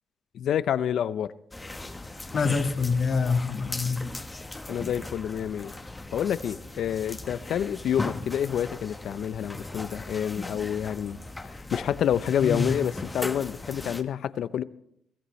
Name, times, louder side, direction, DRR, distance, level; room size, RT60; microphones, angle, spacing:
voice 1, 0.3-1.3 4.7-5.7 6.1-11.2 11.4-14.6, left 9 dB, 70° left, 15 dB, 0.6 m, -28 dB
sound 1, 1.5-14.0, left 2 dB, 15° left, 1.1 m, -38 dB
voice 2, 2.3-4.0 12.4-12.7, left 4 dB, 50° left, 5 dB, 1.7 m, -25 dB
22.5 x 14.0 x 3.2 m, 0.74 s
cardioid pair, 90°, 0 cm